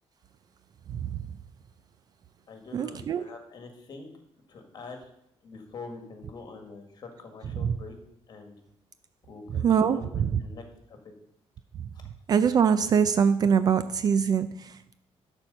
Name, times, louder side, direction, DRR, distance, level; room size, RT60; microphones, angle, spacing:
voice 1, 0.9-1.3 2.7-3.2 7.6-7.8 9.5-10.4 11.7-11.9 12.3-15.0, right 7 dB, 40° right, 12 dB, 0.4 m, -24 dB
voice 2, 2.5-4.1 4.5-5.1 5.4-8.0 8.3-8.6 9.3-11.0 11.9-12.0, left 4 dB, 40° left, 4 dB, 1.7 m, -45 dB
11.5 x 4.4 x 6.7 m, 0.78 s
cardioid pair, 165°, 11 cm